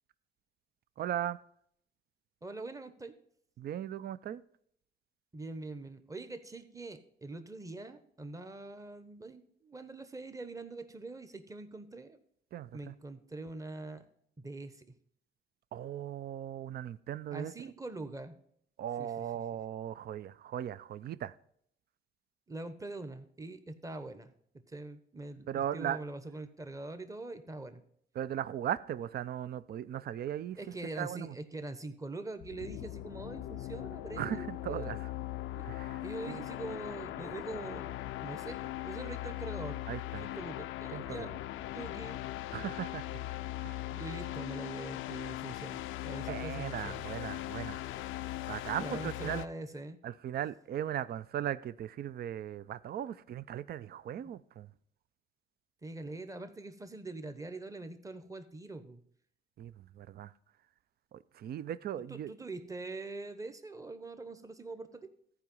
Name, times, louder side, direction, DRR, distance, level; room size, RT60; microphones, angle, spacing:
voice 1, 1.0-1.4 3.6-4.4 12.5-12.9 15.7-17.5 18.8-21.3 25.5-26.0 28.2-30.6 31.0-31.4 34.2-35.1 35.6-36.4 39.9-40.3 40.9-41.3 42.5-43.2 43.6-43.8 46.3-47.8 48.5-49.4 50.0-54.7 59.6-60.3 61.1-62.3, right 10 dB, 50° right, 0.4 m, -38 dB
voice 2, 2.4-3.1 5.3-12.2 12.7-14.1 14.4-14.9 17.3-18.3 19.0-19.2 22.5-27.8 30.6-35.0 35.6-35.7 36.0-39.8 40.2-41.4 41.7-42.5 43.9-47.2 48.8-50.0 54.2-54.3 55.8-59.0 62.1-65.1, right 2 dB, 15° right, 1.0 m, -43 dB
sound 1, 32.4-49.5, left 15 dB, 85° left, 0.5 m, -40 dB
14.0 x 4.9 x 5.3 m
cardioid pair, 90°, 20 cm